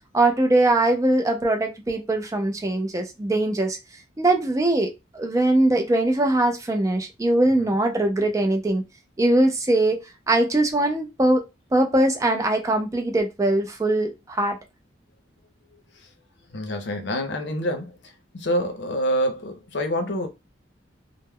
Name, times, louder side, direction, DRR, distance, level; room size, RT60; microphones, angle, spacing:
voice 1, 0.1-3.8 4.2-8.8 9.2-10.0 10.3-11.4 11.7-14.6, right 1 dB, 15° right, 0.3 m, -21 dB
voice 2, 16.5-20.3, equal, 65° left, 0.6 m, -27 dB
2.2 x 2.0 x 3.4 m
head